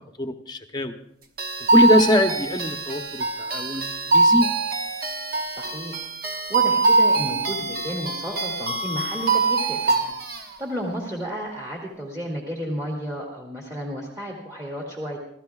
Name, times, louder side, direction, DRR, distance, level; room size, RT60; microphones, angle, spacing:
voice 1, 0.2-0.9 1.7-4.5, left 1 dB, 25° left, 6 dB, 0.8 m, -22 dB
sound 1, 1.4-10.5, right 3 dB, 50° right, 1.3 m, -23 dB
voice 2, 5.6-15.2, equal, 20° right, -2 dB, 2.2 m, -33 dB
28.5 x 14.0 x 2.4 m, 0.75 s
head